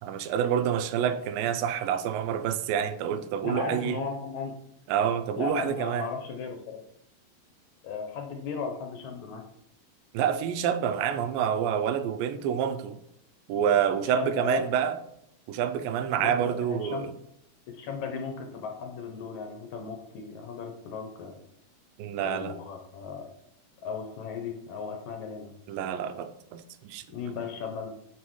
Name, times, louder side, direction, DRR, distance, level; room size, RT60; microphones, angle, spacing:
voice 1, 0.0-4.0 4.9-6.1 10.1-13.0 13.5-15.0 15.5-17.1 22.0-22.6 25.7-27.0, right 8 dB, 85° right, 10 dB, 2.4 m, -28 dB
voice 2, 3.4-4.6 5.4-6.8 7.8-9.4 14.1-14.6 16.2-17.1 17.8-21.3 22.2-23.3 23.8-25.5 27.1-27.9, left 5 dB, 70° left, 4 dB, 2.0 m, -36 dB
7.1 x 6.3 x 4.6 m, 0.77 s
omnidirectional pair, 4.0 m